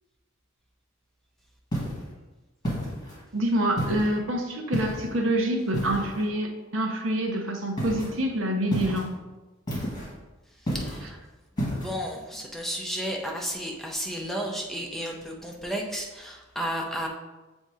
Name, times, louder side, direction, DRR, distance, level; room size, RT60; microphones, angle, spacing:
sound 1, 1.7-2.1 2.6-3.2 3.8-4.2 4.7-5.1 5.7-6.2 7.8-8.1 8.7-9.1 9.7-10.1 10.7-11.1 11.6-11.9, equal, 20° left, 1.7 m, -30 dB
voice 1, 3.3-9.2, right 1 dB, 65° right, 3 dB, 0.8 m, -27 dB
voice 2, 10.6-11.2 11.8-17.1, equal, ahead, -1 dB, 0.6 m, -33 dB
7.6 x 2.7 x 4.8 m, 1.1 s
head